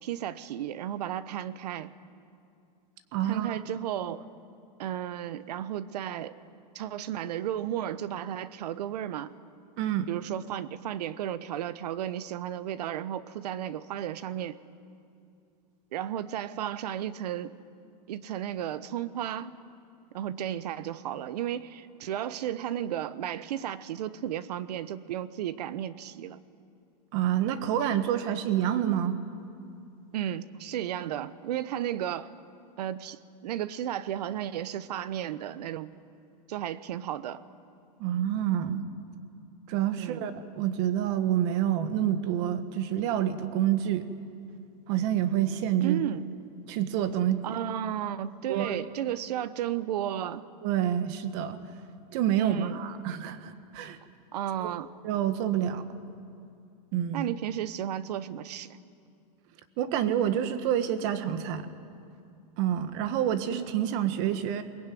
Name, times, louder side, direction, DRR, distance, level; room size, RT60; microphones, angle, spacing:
voice 1, 0.0-1.9 3.2-4.2 4.8-6.4 6.7-9.3 10.1-14.6 15.9-17.5 18.1-19.5 20.1-26.4 30.1-32.3 32.8-35.9 36.5-37.4 40.0-40.2 45.8-46.3 47.4-50.4 52.3-52.8 54.3-54.9 57.1-58.8, right 11 dB, 80° right, 15 dB, 1.1 m, -33 dB
voice 2, 3.1-3.6 9.8-10.1 27.1-29.2 38.0-38.8 39.7-44.1 44.9-46.0 46.7-47.6 48.5-48.8 50.6-51.6 52.1-54.0 54.6-54.7 55.0-55.8 56.9-57.3 59.8-61.7 62.6-64.6, right 10 dB, 45° right, 11 dB, 1.5 m, -28 dB
22.0 x 20.5 x 9.3 m, 2.5 s
supercardioid pair, 160°, 20 cm